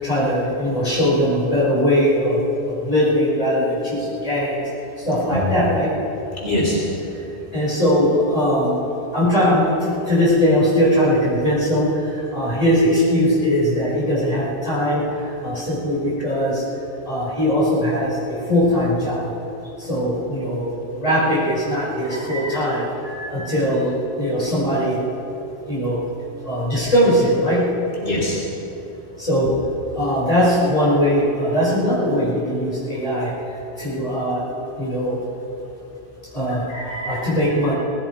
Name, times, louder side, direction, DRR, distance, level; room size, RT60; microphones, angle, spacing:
voice 1, 0.0-4.6 5.0-5.9 7.5-8.7 9.1-12.0 12.3-15.0 15.4-16.6 17.0-19.3 19.8-22.9 23.3-25.0 25.7-26.0 26.4-27.7 29.2-29.6 29.9-33.3 33.8-34.4 34.8-35.2 36.3-36.7 37.1-37.7, equal, 35° left, -7 dB, 4.9 m, -20 dB
voice 2, 6.4-6.8 22.1-22.6 23.0-23.4 28.0-28.4 36.7-37.2, left 1 dB, 90° left, -6 dB, 3.6 m, -25 dB
18.0 x 16.0 x 4.6 m, 3.0 s
omnidirectional pair, 1.1 m